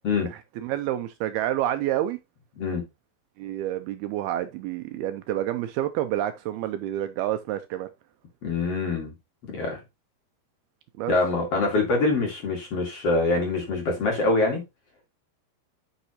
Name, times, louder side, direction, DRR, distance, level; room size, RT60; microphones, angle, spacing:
voice 1, 0.2-2.2 3.4-7.9 11.0-11.1, right 12 dB, 80° right, 2.4 m, -28 dB
voice 2, 8.4-9.1 9.5-9.8 11.1-14.6, left 3 dB, 45° left, 2.4 m, -24 dB
10.0 x 5.9 x 2.9 m
omnidirectional pair, 4.9 m